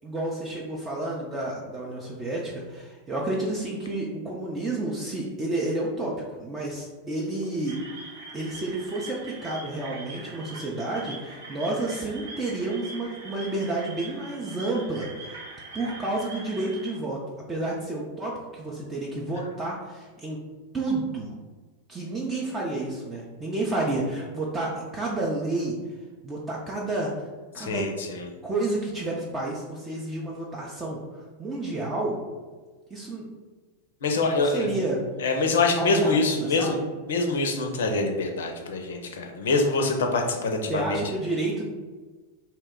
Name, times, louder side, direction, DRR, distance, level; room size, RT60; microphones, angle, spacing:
voice 1, 0.0-7.8 8.3-15.4 15.7-17.2 17.5-20.4 20.7-21.3 21.9-25.7 26.2-27.1 27.5-27.9 28.4-32.2 32.9-33.3 34.4-35.0 35.8-36.8 40.7-41.7, right 2 dB, 15° right, -3 dB, 0.5 m, -30 dB
sound 1, 7.7-16.9, right 3 dB, 65° right, 0.8 m, -42 dB
voice 2, 27.6-28.3 34.0-34.7 35.2-36.8 37.1-41.0, left 3 dB, 60° left, 3 dB, 0.5 m, -25 dB
2.8 x 2.2 x 3.6 m, 1.3 s
figure-of-eight pair, 90°, 0 cm